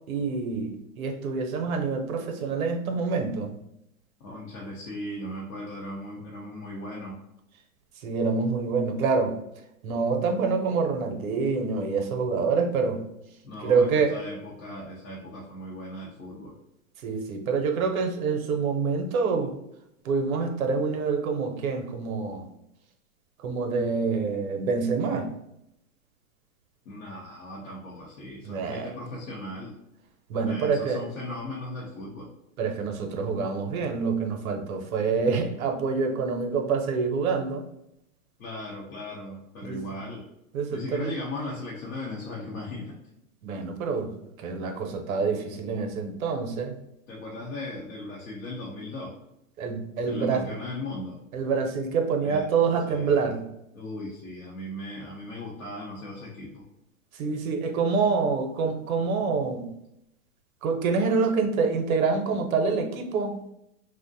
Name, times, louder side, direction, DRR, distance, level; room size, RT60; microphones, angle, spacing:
voice 1, 0.1-3.5 8.0-9.3 9.8-13.0 13.6-14.1 17.0-19.5 20.0-22.4 23.4-25.3 28.4-28.9 30.3-31.0 32.6-37.6 39.6-39.8 40.5-41.1 43.4-44.1 44.4-46.7 49.6-50.5 51.3-53.4 57.2-59.7 60.6-63.4, right 4 dB, 80° right, 4 dB, 0.6 m, -26 dB
voice 2, 4.2-7.2 13.4-16.5 26.9-29.8 30.4-32.3 38.4-40.2 40.7-42.9 47.1-49.1 50.0-51.2 52.2-52.5 52.9-53.3 53.7-56.6, left 1 dB, 85° left, -4 dB, 0.7 m, -37 dB
2.4 x 2.1 x 2.6 m, 0.81 s
hypercardioid pair, 105°, 42 cm